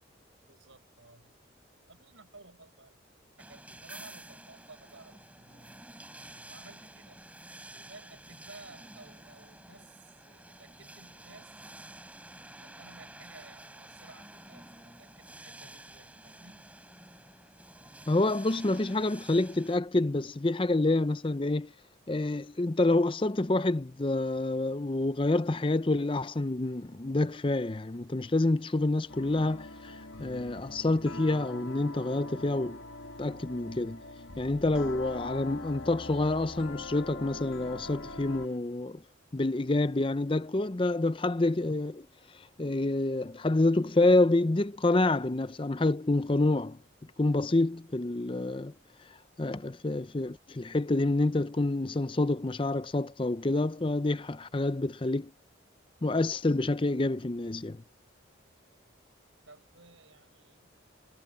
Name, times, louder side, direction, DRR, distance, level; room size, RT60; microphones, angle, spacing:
voice 1, 0.5-1.3 1.9-3.0 3.4-5.8 6.5-7.3 7.7-11.6 12.6-16.7 59.5-60.7, right 3 dB, 75° right, 6.9 m, -55 dB
sound 1, 3.4-19.8, right 1 dB, 5° right, 3.8 m, -50 dB
voice 2, 18.1-21.7 22.1-32.8 33.2-34.0 34.4-39.0 39.3-42.1 42.3-46.8 47.2-48.7 49.4-55.3 56.0-57.8, left 2 dB, 25° left, 0.5 m, -28 dB
sound 2, 29.1-38.6, left 2 dB, 85° left, 1.7 m, -43 dB
head